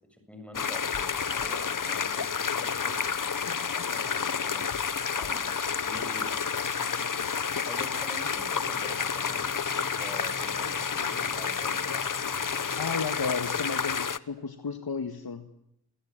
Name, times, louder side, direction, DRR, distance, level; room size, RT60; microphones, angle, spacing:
voice 1, 0.1-3.2 3.7-5.5 5.8-6.4 7.6-9.6 10.0-13.0, equal, 5° left, 5 dB, 7.6 m, -46 dB
sound 1, 0.5-14.2, left 6 dB, 55° left, 1.1 m, -30 dB
sound 2, 1.1-12.9, left 2 dB, 30° left, 6.7 m, -53 dB
voice 2, 6.9-7.3 12.8-15.5, left 5 dB, 70° left, 8 dB, 1.8 m, -34 dB
sound 3, 8.6-13.0, right 1 dB, 50° right, 4.5 m, -48 dB
27.5 x 24.0 x 8.9 m, 0.78 s
wide cardioid pair, 60°, 39 cm